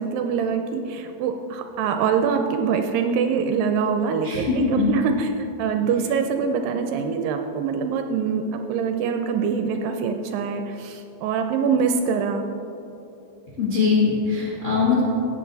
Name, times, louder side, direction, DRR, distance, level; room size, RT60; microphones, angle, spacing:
voice 1, 0.0-12.5, right 6 dB, 80° right, 6 dB, 2.1 m, -24 dB
voice 2, 4.2-4.9 13.6-15.0, left 5 dB, 75° left, -6 dB, 0.7 m, -21 dB
16.0 x 7.6 x 4.0 m, 2.9 s
omnidirectional pair, 4.4 m